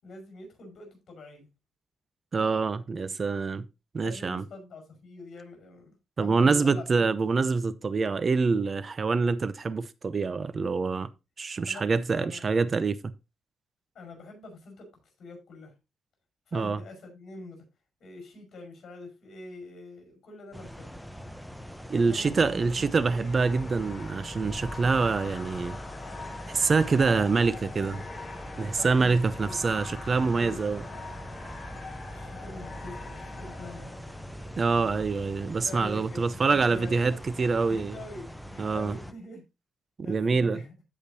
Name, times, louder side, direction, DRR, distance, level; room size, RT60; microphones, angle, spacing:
voice 1, 0.0-1.5 4.0-7.0 11.7-12.5 13.9-14.9 15.2-15.7 16.5-17.6 18.0-20.9 22.0-22.5 22.8-22.9 28.6-29.7 30.4-30.6 30.9-31.1 32.1-33.9 35.6-39.4 40.0-40.7, left 2 dB, 60° left, 5.3 m, -45 dB
voice 2, 2.3-3.7 3.9-4.4 6.2-11.1 11.4-13.0 16.5-16.8 21.9-25.8 26.5-28.0 28.6-30.8 34.6-38.0 38.6-39.0 40.1-40.6, right 4 dB, 35° right, 0.7 m, -26 dB
sound 1, 20.5-39.1, equal, 5° left, 0.9 m, -43 dB
sound 2, 22.2-35.0, left 3 dB, 35° left, 3.4 m, -43 dB
15.0 x 5.1 x 2.8 m
cardioid pair, 110°, 0 cm